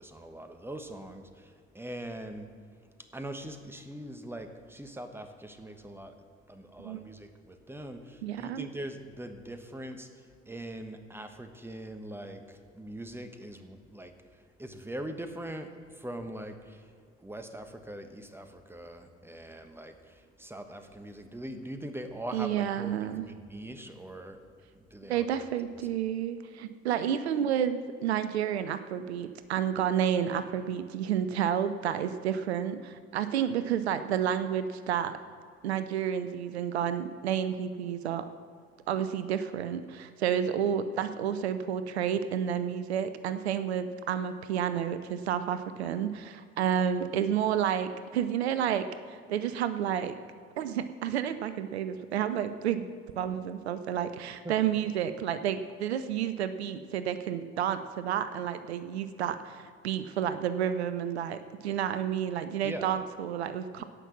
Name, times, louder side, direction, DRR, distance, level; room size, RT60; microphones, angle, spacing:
voice 1, 0.0-2.5 3.1-6.2 6.5-16.9 17.2-24.4 24.7-25.3 54.4-54.5 62.6-63.0 63.8-63.9, right 1 dB, 5° right, 7 dB, 1.2 m, -42 dB
voice 2, 8.2-8.7 22.3-23.2 25.1-35.2 35.6-38.2 38.9-50.2 50.6-52.9 53.2-63.8, right 9 dB, 85° right, 12 dB, 0.5 m, -30 dB
16.5 x 6.0 x 6.0 m, 2.1 s
figure-of-eight pair, 55°, 31 cm